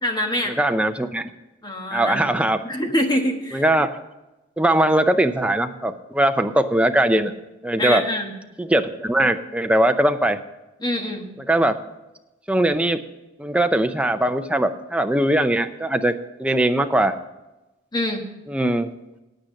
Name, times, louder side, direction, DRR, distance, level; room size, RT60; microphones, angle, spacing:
voice 1, 0.0-0.6 1.6-2.3 2.6-3.6 7.8-8.3 10.8-11.3 17.9-18.3, left 1 dB, 20° left, 3 dB, 1.4 m, -24 dB
voice 2, 0.6-1.3 1.9-2.6 3.5-3.9 4.6-7.3 7.6-8.0 8.6-10.4 11.5-11.8 12.5-13.0 13.4-16.1 16.4-17.1 18.5-18.9, right 1 dB, 5° right, 7 dB, 0.5 m, -20 dB
9.8 x 9.1 x 6.4 m, 1.0 s
head